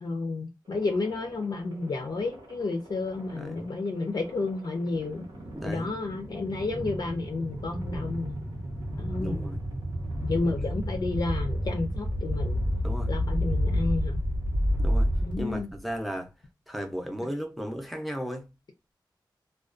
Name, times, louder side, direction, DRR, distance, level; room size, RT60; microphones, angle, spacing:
voice 1, 0.0-5.3 5.6-8.4 9.0-9.4 10.2-12.6 13.1-14.2 15.2-15.7, left 3 dB, 55° left, 0.4 m, -31 dB
sound 1, 0.7-15.8, equal, 80° right, 1.0 m, -31 dB
voice 2, 3.3-3.7 5.5-5.9 9.2-9.6 12.8-13.1 14.8-15.1 15.4-16.3 16.7-18.4, equal, ahead, 0.5 m, -35 dB
2.4 x 2.2 x 2.4 m
wide cardioid pair, 110°, 8 cm